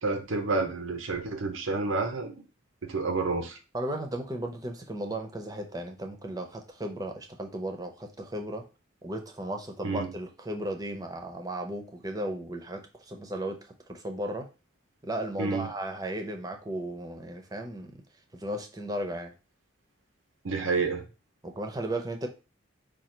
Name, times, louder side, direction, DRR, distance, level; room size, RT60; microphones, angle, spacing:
voice 1, 0.0-2.4 2.8-3.6 9.8-10.1 15.4-15.7 20.4-21.0, right 3 dB, 85° right, 0.8 m, -29 dB
voice 2, 3.7-8.6 9.0-13.6 13.9-14.5 15.0-18.0 18.3-19.3 21.4-22.3, right 1 dB, 20° right, 0.6 m, -35 dB
5.0 x 2.4 x 4.3 m
head